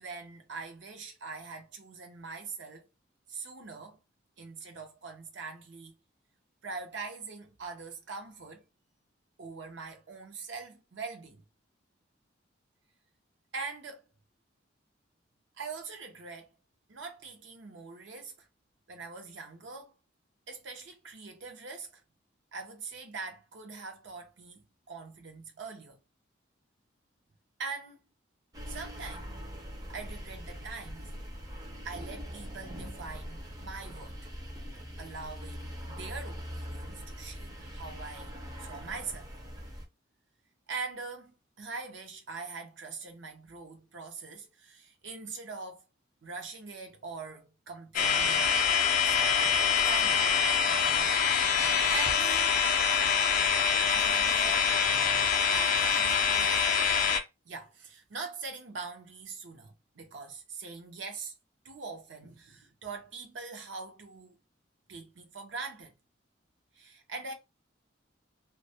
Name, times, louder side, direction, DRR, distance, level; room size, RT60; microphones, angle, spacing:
voice 1, 0.0-2.9 3.3-4.0 4.4-5.9 6.6-8.6 9.4-11.4 13.5-14.0 15.6-16.5 16.9-18.5 18.9-19.9 20.5-22.0 22.5-26.0 27.6-28.0 28.7-29.3 29.9-31.2 31.8-34.2 35.0-38.3 38.6-39.3 40.7-45.9 46.2-48.8 49.0-50.3 51.5-52.6 53.4-54.7 55.5-57.0 57.5-61.3 61.6-64.4 64.9-65.9 66.7-67.3, right 4 dB, 70° right, 0.6 m, -43 dB
sound 1, 28.5-39.9, equal, 20° right, 0.4 m, -42 dB
sound 2, 47.9-57.2, left 7 dB, 45° left, 0.4 m, -25 dB
2.2 x 2.0 x 2.7 m
head